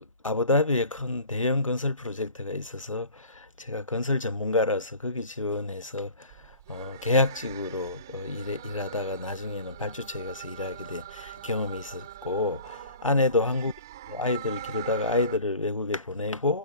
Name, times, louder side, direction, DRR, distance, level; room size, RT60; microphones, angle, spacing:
voice 1, 0.0-6.3 6.7-13.7 14.1-16.6, left 2 dB, 75° left, 1.4 m, -28 dB
sound 1, 6.3-15.4, right 13 dB, 5° right, 4.0 m, -43 dB
figure-of-eight pair, 175°, 17 cm